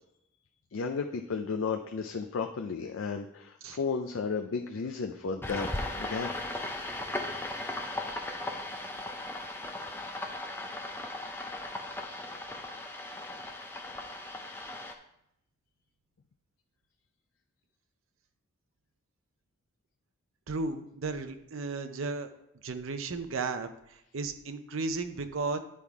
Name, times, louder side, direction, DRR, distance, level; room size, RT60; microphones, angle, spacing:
voice 1, 0.7-6.3, left 5 dB, 70° left, 5 dB, 0.5 m, -33 dB
sound 1, 5.4-14.9, left 1 dB, 10° left, 0.5 m, -37 dB
voice 2, 20.5-22.3 22.6-25.6, right 3 dB, 70° right, 8 dB, 0.6 m, -34 dB
10.0 x 3.6 x 4.7 m, 0.79 s
head